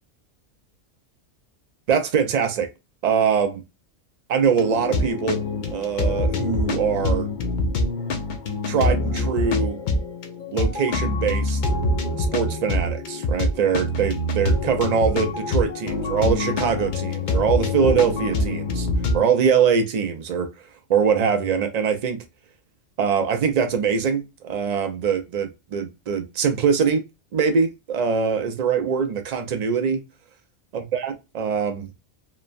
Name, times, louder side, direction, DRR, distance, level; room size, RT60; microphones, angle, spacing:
voice 1, 1.9-2.7 3.0-3.6 4.3-5.4 5.7-7.3 8.7-9.8 10.5-11.6 12.2-18.9 19.1-20.5 20.9-22.2 23.0-27.0 27.3-30.0 30.7-32.0, right 6 dB, 70° right, 0.4 m, -23 dB
sound 1, 4.5-19.2, left 2 dB, 70° left, 0.4 m, -25 dB
3.0 x 2.1 x 2.4 m
omnidirectional pair, 1.3 m